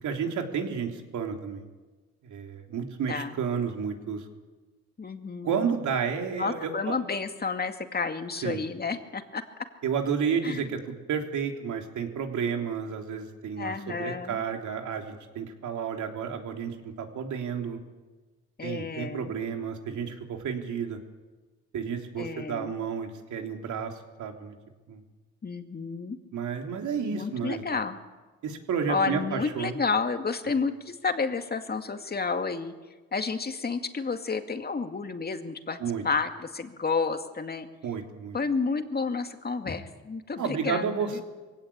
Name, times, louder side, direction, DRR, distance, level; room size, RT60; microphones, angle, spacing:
voice 1, 0.0-1.6 2.2-4.3 5.4-7.0 8.4-8.6 9.8-17.8 18.6-21.0 21.7-24.6 24.9-25.0 26.3-27.6 28.4-29.8 30.5-30.6 35.8-36.0 37.8-38.4 40.4-41.2, right 6 dB, 75° right, 4 dB, 3.4 m, -31 dB
voice 2, 5.0-5.7 6.3-9.4 10.4-10.7 13.6-14.4 18.6-19.3 22.2-22.7 25.4-26.2 27.1-28.0 28.9-32.7 33.1-35.8 36.0-37.7 38.3-41.2, left 4 dB, 30° left, 6 dB, 2.2 m, -31 dB
22.5 x 17.0 x 8.7 m, 1.2 s
cardioid pair, 90°, 30 cm